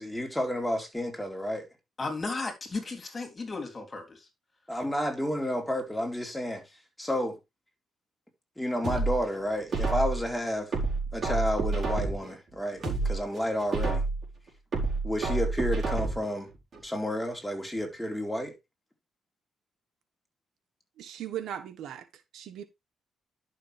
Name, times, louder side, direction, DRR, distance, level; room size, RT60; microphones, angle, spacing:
voice 1, 0.0-1.7 4.7-6.6 7.0-7.4 8.6-10.7 11.1-14.0 15.0-16.5 16.8-18.6, equal, 5° left, 4.1 m, -31 dB
voice 2, 2.0-4.3, left 3 dB, 30° left, 3.3 m, -35 dB
sound 1, 8.8-10.3 10.7-12.3 12.7-14.3 14.7-16.3 16.7-16.8, right 3 dB, 45° right, 4.5 m, -29 dB
voice 3, 21.0-22.0 22.3-22.6, right 10 dB, 75° right, 1.5 m, -38 dB
11.0 x 6.5 x 3.4 m
cardioid pair, 90°, 0 cm